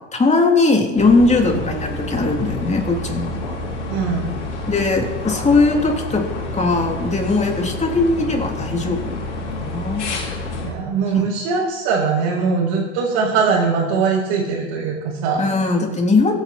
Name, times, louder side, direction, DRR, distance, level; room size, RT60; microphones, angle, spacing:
voice 1, 0.1-3.4 4.7-6.2 6.5-9.2 9.6-10.0 11.2-11.3 15.4-16.4, left 3 dB, 20° left, 1 dB, 3.3 m, -19 dB
sound 1, 1.0-10.7, left 2 dB, 85° left, 3.1 m, -28 dB
voice 2, 3.9-4.3 10.6-15.4, right 5 dB, 65° right, -6 dB, 4.6 m, -21 dB
24.5 x 9.2 x 4.4 m, 1.2 s
hypercardioid pair, 75°, 34 cm